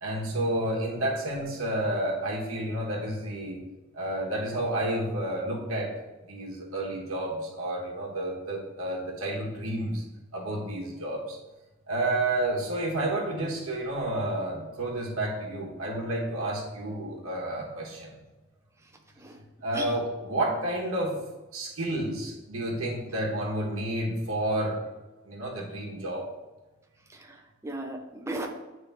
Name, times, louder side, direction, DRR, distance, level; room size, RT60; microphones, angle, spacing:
voice 1, 0.0-3.6 3.9-5.9 6.3-10.0 10.3-11.4 11.9-18.1 19.6-21.2 21.5-24.8 25.3-26.3, right 1 dB, 85° right, -2 dB, 1.2 m, -30 dB
voice 2, 27.1-28.5, right 2 dB, 15° right, 2 dB, 0.6 m, -36 dB
8.5 x 3.4 x 3.4 m, 1.1 s
head